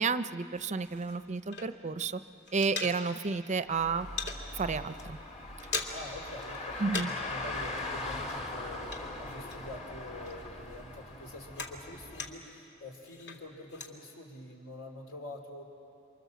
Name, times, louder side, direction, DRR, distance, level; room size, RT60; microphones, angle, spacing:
voice 1, 0.0-2.2 2.5-4.1 4.5-5.2 6.8-7.1, right 4 dB, 35° right, 12 dB, 0.6 m, -31 dB
sound 1, 0.5-2.0 2.3-3.4 3.7-4.4 4.9-5.0 5.3-6.2 6.5-7.3 7.6-9.9 10.2-12.6 13.0-13.9, left 4 dB, 55° left, 2.3 m, -41 dB
Car, 3.7-12.3, left 2 dB, 35° left, 2.0 m, -40 dB
voice 2, 5.9-15.6, left 1 dB, 75° left, 2 dB, 3.4 m, -46 dB
29.5 x 25.0 x 7.3 m, 2.7 s
head